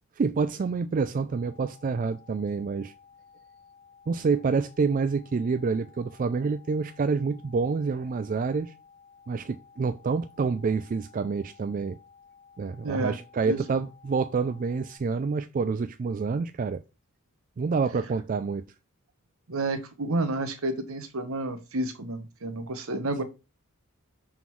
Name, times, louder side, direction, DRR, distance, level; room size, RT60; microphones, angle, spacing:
voice 1, 0.2-2.9 4.1-8.7 9.3-12.0 12.6-16.8 17.6-18.6, right 4 dB, 35° right, 0.3 m, -27 dB
sound 1, 1.3-15.0, left 6 dB, 50° left, 2.4 m, -56 dB
voice 2, 12.8-13.2 13.5-13.6 19.5-23.2, right 2 dB, 70° right, 1.0 m, -30 dB
5.9 x 3.8 x 4.6 m
head